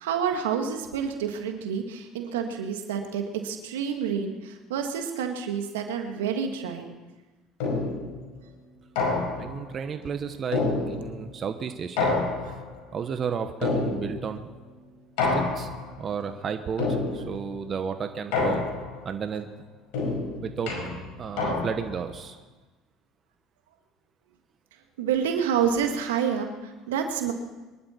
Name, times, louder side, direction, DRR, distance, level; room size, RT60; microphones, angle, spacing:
voice 1, 0.0-6.9 25.0-26.5 26.9-27.3, right 7 dB, 85° right, 5 dB, 1.7 m, -28 dB
sound 1, 7.6-8.1 9.0-9.6 10.5-11.3 12.0-12.8 13.6-14.3 15.2-15.9 16.8-17.4 18.3-19.0 19.9-22.0, left 3 dB, 75° left, 5.0 m, -27 dB
voice 2, 9.4-12.2 12.9-14.5 15.3-15.7 16.0-18.6 19.0-19.5 20.4-20.7 21.2-22.4, right 6 dB, 40° right, 8 dB, 1.1 m, -32 dB
24.0 x 11.5 x 4.4 m, 1.2 s
hypercardioid pair, 70°, 0 cm